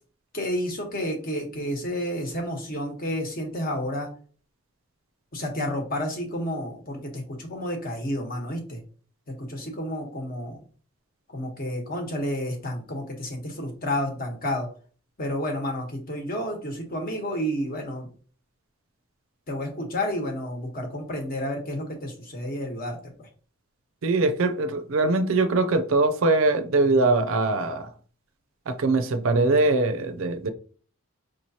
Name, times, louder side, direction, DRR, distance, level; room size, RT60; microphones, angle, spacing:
voice 1, 0.3-4.1 5.3-8.8 9.4-10.6 11.3-14.7 15.2-18.1 19.5-23.3, equal, 45° left, 1.1 m, -30 dB
voice 2, 24.0-27.9 28.7-30.5, right 3 dB, 70° right, 0.5 m, -22 dB
5.0 x 3.1 x 2.8 m
head